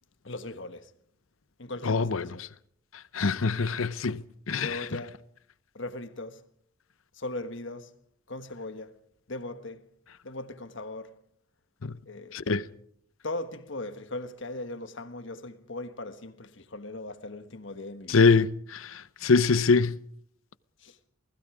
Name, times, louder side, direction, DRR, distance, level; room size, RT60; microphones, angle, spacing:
voice 1, 0.2-0.9 1.6-2.4 4.6-5.2 5.7-6.4 7.1-7.9 8.3-9.0 9.3-9.9 10.2-11.1 12.1-12.4 13.2-18.3 20.8-21.0, left 2 dB, 60° left, 1.4 m, -39 dB
voice 2, 1.9-2.3 3.1-4.2 4.5-4.8 11.8-11.9 12.3-12.6 18.1-19.9, left 4 dB, 80° left, 0.7 m, -24 dB
28.5 x 19.5 x 5.0 m
head